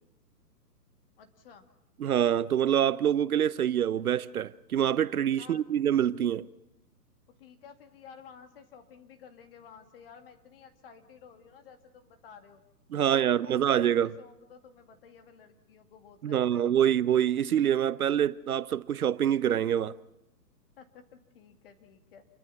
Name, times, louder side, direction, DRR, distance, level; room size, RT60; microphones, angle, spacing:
voice 1, 1.2-1.7 5.4-5.6 7.4-12.6 13.0-16.6 20.8-22.2, left 7 dB, 35° left, 2.3 m, -52 dB
voice 2, 2.0-6.5 12.9-14.1 16.2-20.0, right 10 dB, 60° right, 0.7 m, -26 dB
28.5 x 22.5 x 5.8 m
hypercardioid pair, 160°, 50 cm